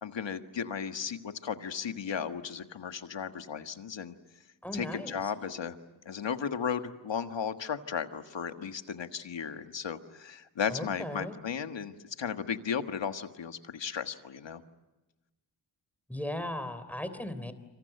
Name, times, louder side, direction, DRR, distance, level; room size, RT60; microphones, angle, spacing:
voice 1, 0.0-4.1 4.7-5.8 6.0-14.6, left 7 dB, 80° left, 8 dB, 1.6 m, -35 dB
voice 2, 4.6-5.3 10.7-11.4 16.1-17.5, left 1 dB, 5° left, 11 dB, 3.5 m, -37 dB
27.0 x 26.0 x 8.0 m, 1.1 s
cardioid pair, 60°, 44 cm